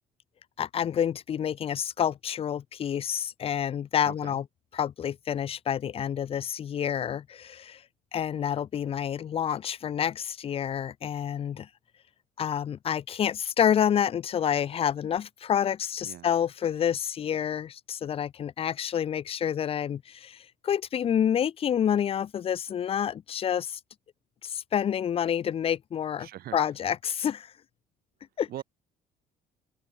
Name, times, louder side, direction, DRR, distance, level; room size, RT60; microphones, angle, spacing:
voice 1, 0.6-4.4 4.7-7.8 8.1-11.7 12.4-23.8 24.4-27.5 28.4-28.5, left 9 dB, 35° left, 0.4 m, -28 dB
voice 2, 4.0-4.4 16.0-16.3 26.2-26.7 28.5-28.6, right 13 dB, 65° right, 1.2 m, -41 dB
open air
cardioid pair, 110°, 17 cm